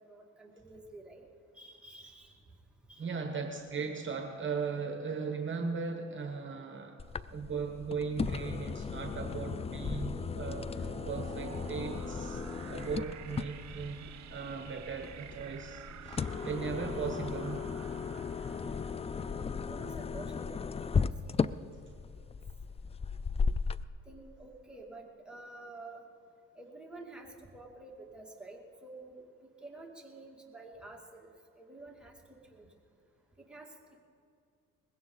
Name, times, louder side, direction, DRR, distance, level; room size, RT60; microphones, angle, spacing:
voice 1, 0.1-1.3 1.5-2.4 2.9-3.1 19.2-21.6 22.1-22.2 24.1-26.0 26.6-29.2 29.6-31.3 31.6-32.1 32.5-32.7 33.5-33.7, right 2 dB, 5° right, -1 dB, 2.4 m, -50 dB
voice 2, 3.0-7.0 7.2-17.6, right 5 dB, 40° right, 4 dB, 1.3 m, -38 dB
sound 1, 7.0-23.8, left 5 dB, 20° left, 0.3 m, -36 dB
sound 2, 8.9-20.3, right 9 dB, 65° right, 1.0 m, -50 dB
20.5 x 16.5 x 4.0 m, 2.3 s
cardioid pair, 90°, 30 cm